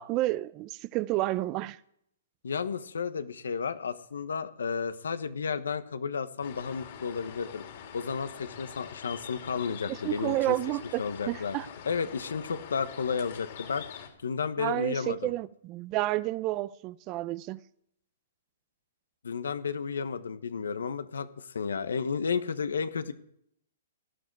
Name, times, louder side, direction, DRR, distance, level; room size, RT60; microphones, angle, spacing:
voice 1, 0.0-1.8 9.9-11.7 14.6-17.6, right 17 dB, 30° right, 0.6 m, -30 dB
voice 2, 2.4-7.6 7.9-10.6 11.0-11.6 11.8-13.8 14.2-15.3 19.2-23.1, left 6 dB, 85° left, 1.3 m, -32 dB
sound 1, 6.4-14.1, left 8 dB, 55° left, 3.5 m, -45 dB
18.0 x 12.5 x 4.8 m
hypercardioid pair, 145°, 0 cm